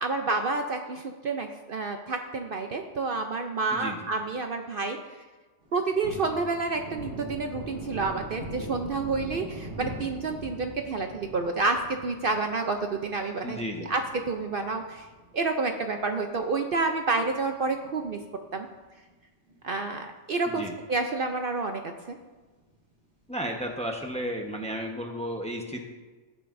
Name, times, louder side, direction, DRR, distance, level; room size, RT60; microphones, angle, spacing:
voice 1, 0.0-5.0 5.7-11.8 12.0-13.6 13.9-14.0 14.3-15.1 15.3-18.2 18.5-18.7 19.6-20.6 20.9-21.8 22.1-22.2, right 3 dB, 55° right, 5 dB, 0.8 m, -29 dB
voice 2, 3.7-4.1 13.4-13.9 20.5-20.7 23.3-25.8, equal, 5° left, 2 dB, 1.0 m, -33 dB
Thunder, 5.6-16.3 16.7-16.8 17.2-18.7 19.0-19.1 19.5-20.3 20.7-20.8 21.1-21.2 23.6-24.1, right 1 dB, 70° right, 3.0 m, -42 dB
15.5 x 9.2 x 2.6 m, 1.3 s
omnidirectional pair, 1.2 m